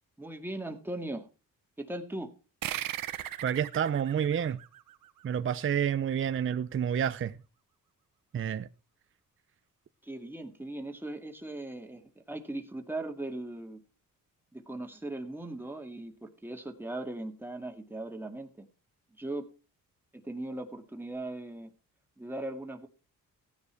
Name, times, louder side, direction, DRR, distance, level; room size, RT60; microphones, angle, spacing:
voice 1, 0.2-1.3 1.8-2.3 10.0-13.8 14.5-18.7 19.2-19.5 20.1-21.7 22.2-22.9, right 1 dB, 5° right, 2.1 m, -39 dB
sound 1, 2.6-5.7, right 12 dB, 90° right, 1.0 m, -38 dB
voice 2, 3.4-4.6 5.2-7.4 8.3-8.7, right 8 dB, 40° right, 0.6 m, -29 dB
16.0 x 9.7 x 4.5 m
cardioid pair, 105°, 33 cm